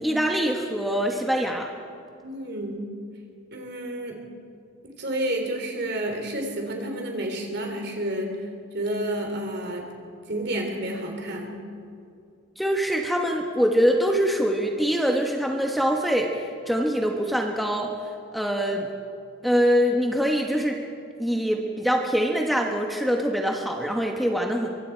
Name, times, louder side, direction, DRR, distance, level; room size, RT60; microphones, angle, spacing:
voice 1, 0.0-1.7 12.6-18.0 18.3-18.9 19.4-20.8 21.2-24.7, equal, ahead, 1 dB, 1.2 m, -24 dB
voice 2, 2.2-2.8 3.5-4.2 5.0-9.8 10.3-11.6, right 1 dB, 55° right, 2 dB, 3.0 m, -30 dB
24.5 x 23.5 x 4.5 m, 2.4 s
head